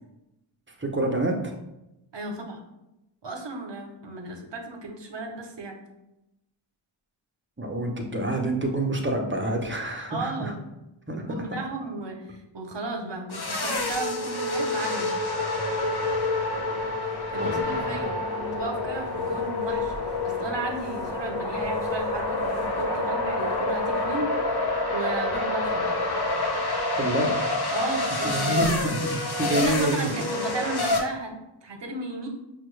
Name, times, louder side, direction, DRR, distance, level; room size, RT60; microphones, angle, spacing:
voice 1, 0.8-1.4 7.6-10.5 11.1-11.3 17.4-17.6 27.0-27.4 28.2-30.1, right 1 dB, 25° right, 2 dB, 0.8 m, -27 dB
voice 2, 2.1-2.6 3.2-5.8 10.1-10.6 11.1-15.1 17.3-24.3 24.9-25.9 27.7-29.0 29.5-31.3 31.6-32.3, right 2 dB, 60° right, 3 dB, 0.9 m, -34 dB
sound 1, 13.3-31.0, left 2 dB, 50° left, 0.8 m, -27 dB
5.5 x 2.3 x 3.2 m, 0.91 s
wide cardioid pair, 40°, 49 cm